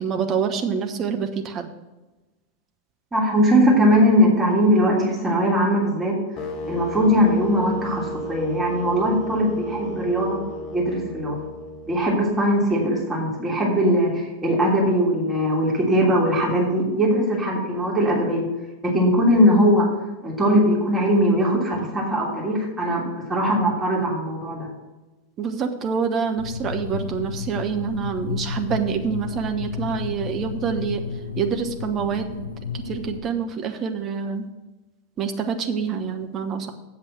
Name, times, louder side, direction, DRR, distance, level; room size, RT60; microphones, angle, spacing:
voice 1, 0.0-1.7 25.4-31.0 31.4-32.4 32.9-34.5 35.2-36.7, right 6 dB, 30° right, 5 dB, 1.1 m, -26 dB
voice 2, 3.1-6.2 6.7-10.4 10.7-11.4 11.9-18.4 18.8-19.9 20.2-24.7, equal, 15° right, -4 dB, 3.0 m, -20 dB
sound 1, 6.4-12.4, equal, 35° left, 1.0 m, -34 dB
sound 2, 26.4-33.2, left 6 dB, 75° left, 0.7 m, -32 dB
8.2 x 7.3 x 6.1 m, 1.1 s
figure-of-eight pair, 90°, 0 cm